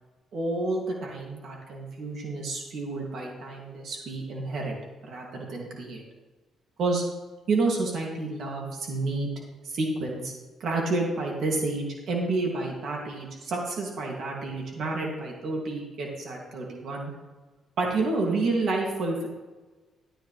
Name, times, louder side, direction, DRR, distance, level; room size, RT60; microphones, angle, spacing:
voice 1, 0.3-4.8 5.0-6.0 6.8-7.0 7.5-9.3 9.6-10.3 10.6-17.1 17.8-19.3, right 3 dB, 65° right, -1 dB, 2.3 m, -29 dB
12.5 x 10.0 x 3.3 m, 1.2 s
cardioid pair, 90°, 0 cm